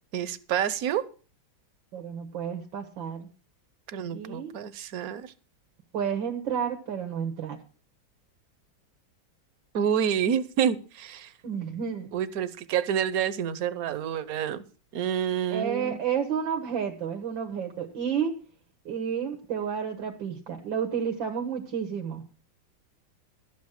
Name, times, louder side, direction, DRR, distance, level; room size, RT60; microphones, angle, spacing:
voice 1, 0.1-1.0 3.9-5.3 9.7-11.3 12.1-14.6 14.9-16.0, right 9 dB, 60° right, 15 dB, 1.2 m, -28 dB
voice 2, 1.9-3.3 4.1-4.5 5.9-7.6 11.4-12.1 15.5-18.3 18.9-22.2, right 7 dB, 90° right, 4 dB, 2.1 m, -31 dB
12.0 x 8.3 x 6.4 m, 0.38 s
omnidirectional pair, 2.0 m